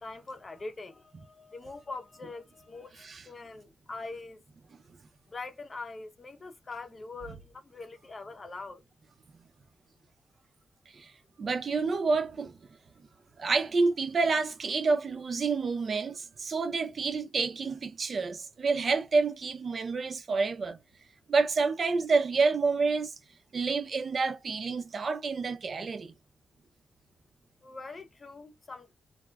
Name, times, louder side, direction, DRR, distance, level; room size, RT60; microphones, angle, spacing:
voice 1, 0.0-4.4 5.3-8.8 27.6-28.9, left 3 dB, 40° left, 0.6 m, -43 dB
voice 2, 11.4-12.6 13.4-20.8 21.3-23.1 23.5-26.1, right 4 dB, 55° right, 0.5 m, -28 dB
2.3 x 2.1 x 3.2 m
cardioid pair, 80°, 0 cm